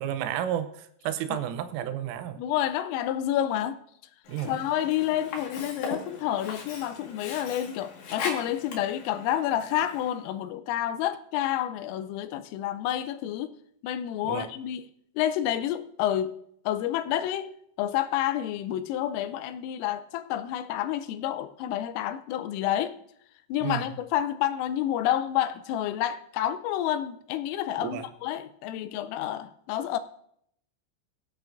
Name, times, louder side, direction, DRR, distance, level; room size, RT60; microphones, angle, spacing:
voice 1, 0.0-2.4 4.3-4.6 14.3-14.5 23.6-23.9 27.8-28.1, right 10 dB, 85° right, 10 dB, 3.4 m, -32 dB
voice 2, 2.4-3.8 4.4-13.5 13.8-14.8 15.2-16.4 16.7-17.5 17.8-23.0 23.5-30.0, left 11 dB, 90° left, 12 dB, 3.3 m, -29 dB
Sink (filling or washing), 4.2-10.2, left 4 dB, 65° left, 3.6 m, -39 dB
22.5 x 9.1 x 2.6 m, 0.70 s
omnidirectional pair, 5.7 m